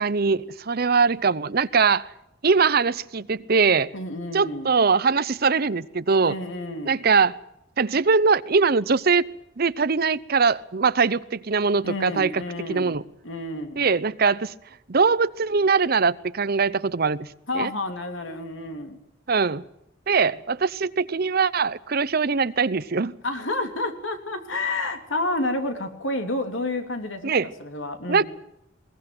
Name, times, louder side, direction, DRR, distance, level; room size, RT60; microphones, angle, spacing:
voice 1, 0.0-2.1 2.4-3.9 4.3-6.3 6.9-7.4 7.8-9.2 9.6-12.4 12.7-13.0 13.8-14.5 14.9-17.3 17.5-17.7 19.3-19.6 20.1-23.2 27.2-27.5 28.1-28.2, right 5 dB, 50° right, 16 dB, 0.7 m, -22 dB
voice 2, 3.9-4.7 6.2-7.0 11.8-13.0 13.2-13.8 17.5-19.0 23.2-27.3 27.6-28.2, left 2 dB, 80° left, 6 dB, 3.1 m, -30 dB
21.5 x 18.5 x 7.9 m, 0.82 s
head